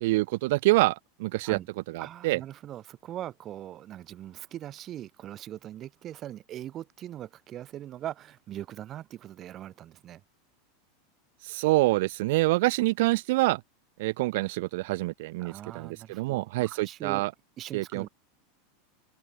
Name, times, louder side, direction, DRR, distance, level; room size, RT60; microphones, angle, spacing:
voice 1, 0.0-1.6 1.9-2.4 11.4-13.6 14.0-17.3 17.7-18.1, right 20 dB, 60° right, 0.4 m, -26 dB
voice 2, 2.0-10.2 15.4-17.3 17.6-18.1, right 12 dB, 30° right, 0.8 m, -41 dB
supercardioid pair, 155°, 0 cm